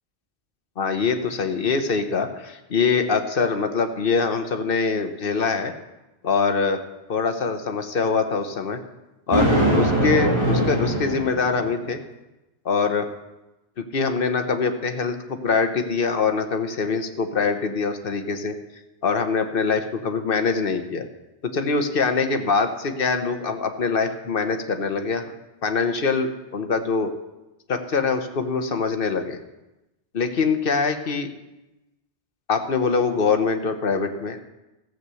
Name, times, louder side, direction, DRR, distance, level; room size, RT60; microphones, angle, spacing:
voice 1, 0.8-5.7 6.2-6.8 7.1-8.8 9.3-9.5 9.8-12.0 12.6-13.1 13.8-18.5 19.0-21.1 21.5-25.3 25.6-27.1 27.7-29.4 30.1-31.3 32.5-34.4, left 4 dB, 55° left, 7 dB, 1.2 m, -23 dB
Thunder, 9.3-11.8, right 1 dB, 25° right, 2.1 m, -21 dB
14.5 x 7.7 x 6.9 m, 0.99 s
omnidirectional pair, 1.1 m